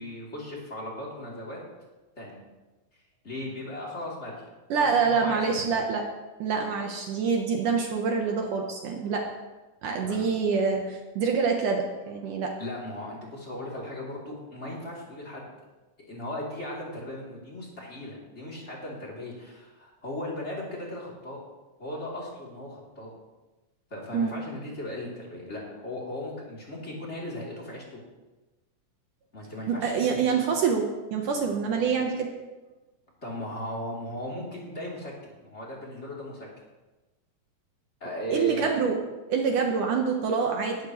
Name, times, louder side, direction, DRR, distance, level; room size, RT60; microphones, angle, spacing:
voice 1, 0.0-1.6 2.2-2.4 3.2-4.4 4.8-5.5 5.7-5.8 10.0-10.3 12.6-15.5 16.1-21.4 21.8-23.1 23.9-28.0 29.3-30.0 33.2-35.1 35.4-36.5 38.0-38.7, left 1 dB, 20° left, -4 dB, 3.3 m, -37 dB
voice 2, 4.7-6.1 6.4-9.3 9.8-12.5 24.1-24.5 29.7-32.3 38.3-38.9 39.3-40.8, right 5 dB, 70° right, 1 dB, 2.5 m, -26 dB
19.5 x 12.5 x 3.2 m, 1.1 s
omnidirectional pair, 4.0 m